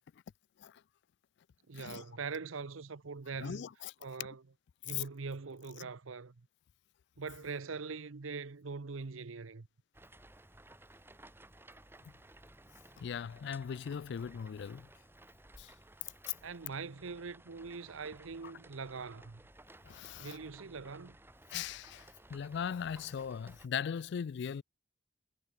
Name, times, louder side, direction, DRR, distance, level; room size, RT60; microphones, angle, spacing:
voice 1, 1.7-3.7 4.0-4.4 4.8-6.5 7.2-9.7 16.4-19.4 20.2-21.2, right 4 dB, 90° right, 0.8 m, -42 dB
voice 2, 3.4-3.9 4.9-5.0 5.8-5.9 13.0-14.9 15.6-15.7 16.2-16.4 19.8-20.4 21.5-24.6, left 8 dB, 60° left, 0.3 m, -39 dB
sound 1, 9.9-23.7, right 1 dB, 10° right, 2.7 m, -57 dB
head